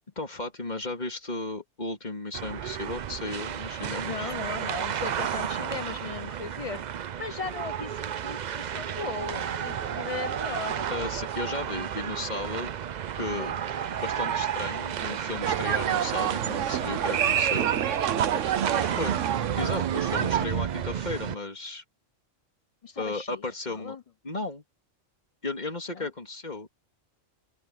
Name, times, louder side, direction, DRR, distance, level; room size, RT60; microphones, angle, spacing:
voice 1, 0.2-4.3 10.9-12.8 13.1-13.5 14.0-17.7 19.0-19.1 19.6-21.8 23.0-24.0 24.2-24.6 25.4-26.7, left 2 dB, 35° left, 3.0 m, -34 dB
sound 1, 2.3-21.4, right 9 dB, 55° right, 0.5 m, -32 dB
voice 2, 4.0-6.8 7.2-10.9 13.2-13.6 17.8-19.0 22.8-24.0 25.9-26.1, left 5 dB, 50° left, 0.4 m, -38 dB
sound 2, 15.4-20.5, right 10 dB, 75° right, 1.1 m, -28 dB
open air
omnidirectional pair, 1.3 m